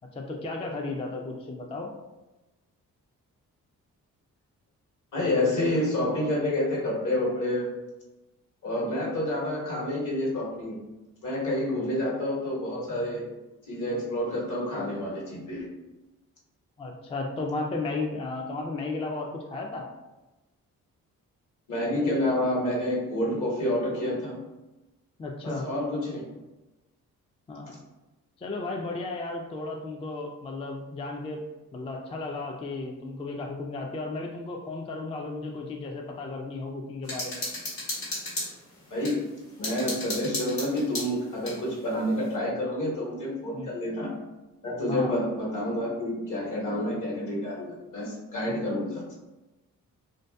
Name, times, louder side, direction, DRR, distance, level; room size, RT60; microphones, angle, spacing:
voice 1, 0.1-1.9 16.8-19.9 25.2-25.6 27.5-27.8 28.4-31.4 31.7-37.5 43.5-43.7 44.9-45.2 48.5-48.6, left 3 dB, 20° left, 1 dB, 0.3 m, -34 dB
voice 2, 5.1-7.6 8.6-10.8 11.2-13.2 13.7-15.7 21.7-24.4 25.4-26.2 38.9-39.2 39.6-44.1 44.6-49.0, left 1 dB, 60° left, -4 dB, 1.1 m, -28 dB
sound 1, 37.0-39.1 39.6-41.6, left 1 dB, 80° left, 1.1 m, -34 dB
2.6 x 2.4 x 2.2 m, 1.1 s
supercardioid pair, 55°, 35 cm